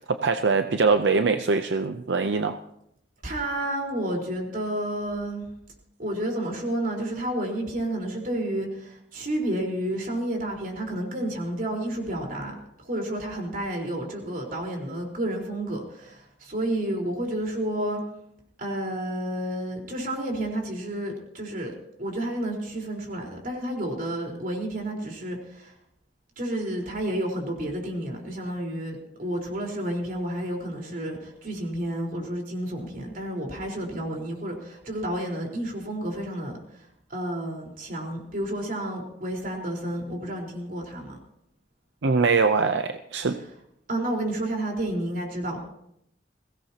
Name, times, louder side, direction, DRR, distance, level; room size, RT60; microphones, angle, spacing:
voice 1, 0.0-2.6 42.0-43.4, right 4 dB, 80° right, 8 dB, 0.7 m, -23 dB
voice 2, 3.2-5.5 6.0-18.0 18.6-21.7 22.0-25.7 26.4-41.2 43.9-45.6, right 1 dB, 50° right, 0 dB, 4.3 m, -31 dB
22.0 x 17.0 x 2.9 m, 0.77 s
head